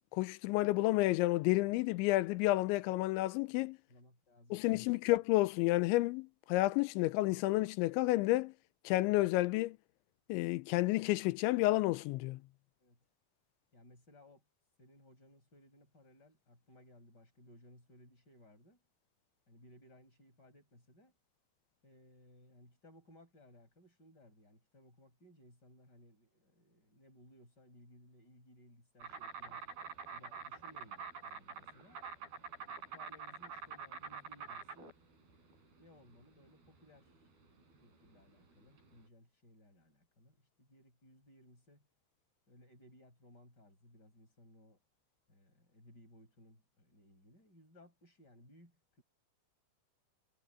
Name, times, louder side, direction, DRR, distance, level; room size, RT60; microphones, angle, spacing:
voice 1, 0.1-3.8 4.5-8.5 8.9-9.8 10.3-12.4, left 19 dB, 80° left, 2.9 m, -30 dB
voice 2, 3.9-4.9 12.8-13.0 13.7-14.4 14.8-18.8 19.5-21.1 21.8-29.7 30.1-32.0 32.9-34.9 35.8-37.1 37.8-41.9 42.5-44.8 45.3-49.0, left 1 dB, 20° left, 7.5 m, -62 dB
Insect, 29.0-39.0, right 6 dB, 50° right, 9.9 m, -47 dB
omnidirectional pair, 5.6 m